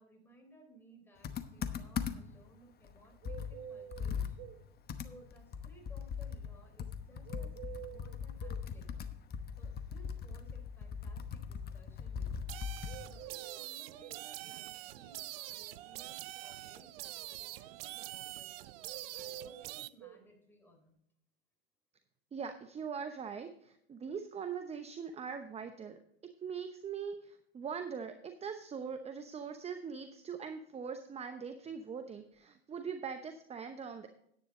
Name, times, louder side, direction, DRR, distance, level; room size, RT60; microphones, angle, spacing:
voice 1, 0.0-4.5 5.0-9.1 9.6-12.5 13.1-18.8 19.1-21.0, equal, 5° left, 1 dB, 3.8 m, -61 dB
Computer keyboard, 1.2-2.4 2.8-2.9 3.2-6.5 6.8-13.3, left 7 dB, 30° left, 1.0 m, -40 dB
sound 1, 3.2-4.6 7.2-8.6 12.9-14.3 18.8-20.2, right 10 dB, 40° right, 1.1 m, -48 dB
sound 2, 12.5-19.9, right 17 dB, 65° right, 0.5 m, -45 dB
voice 2, 22.3-26.0 26.4-34.1, right 6 dB, 20° right, 8 dB, 0.9 m, -42 dB
9.9 x 9.3 x 3.9 m, 0.72 s
hypercardioid pair, 90°, 31 cm